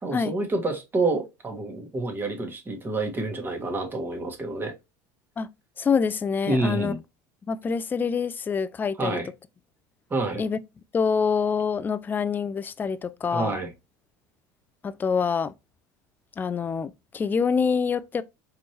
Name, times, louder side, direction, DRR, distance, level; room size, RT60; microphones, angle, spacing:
voice 1, 0.0-4.7 6.5-7.0 9.0-9.3 10.1-10.4 13.3-13.7, right 2 dB, 20° right, 1.4 m, -28 dB
voice 2, 5.8-6.9 7.5-9.2 10.4-10.6 10.9-13.5 14.8-15.5 16.4-18.2, left 6 dB, 20° left, 0.3 m, -26 dB
4.2 x 3.2 x 2.9 m
supercardioid pair, 95°, 10 cm